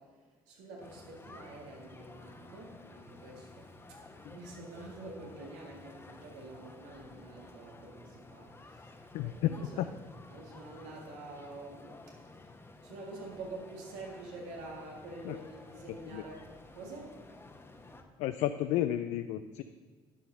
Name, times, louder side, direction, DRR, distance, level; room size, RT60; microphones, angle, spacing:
voice 1, 0.0-9.9 10.3-17.2, right 2 dB, 80° right, -1 dB, 2.1 m, -47 dB
sound 1, 0.8-18.0, left 2 dB, 20° left, 1.2 m, -53 dB
voice 2, 9.1-9.5 9.8-9.9 15.2-15.4 16.1-16.2 18.2-19.6, left 13 dB, 75° left, 10 dB, 0.4 m, -32 dB
10.5 x 5.7 x 5.5 m, 1.5 s
supercardioid pair, 65°, 12 cm